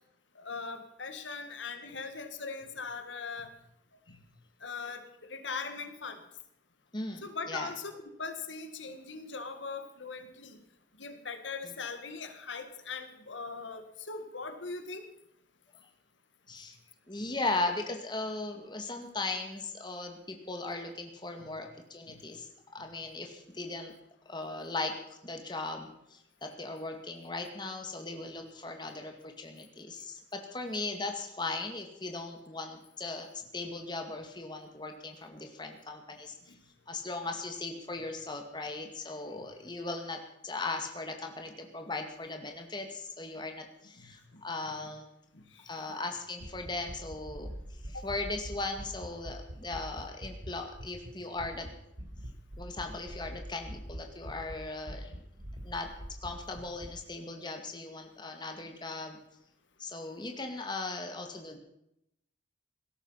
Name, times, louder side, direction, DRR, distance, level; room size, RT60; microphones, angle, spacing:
voice 1, 0.4-3.5 4.1-4.2 4.6-6.2 7.2-10.6 11.0-15.0 21.4-21.6 22.1-22.2 36.5-36.6 44.0-44.4 45.3-45.9 47.9-48.1, left 4 dB, 90° left, 7 dB, 1.9 m, -41 dB
voice 2, 6.9-7.7 11.6-11.7 16.5-16.8 17.1-23.9 24.3-33.3 33.5-36.5 36.9-45.0 45.6-47.5 47.8-51.7 52.6-55.1 55.6-55.9 56.2-59.2 59.8-61.6, left 3 dB, 25° left, 4 dB, 2.2 m, -38 dB
sound 1, 46.4-51.1 51.4-51.7 52.0-54.5 54.9-56.9, equal, 75° right, 4.3 m, -43 dB
17.5 x 13.0 x 5.8 m, 0.79 s
head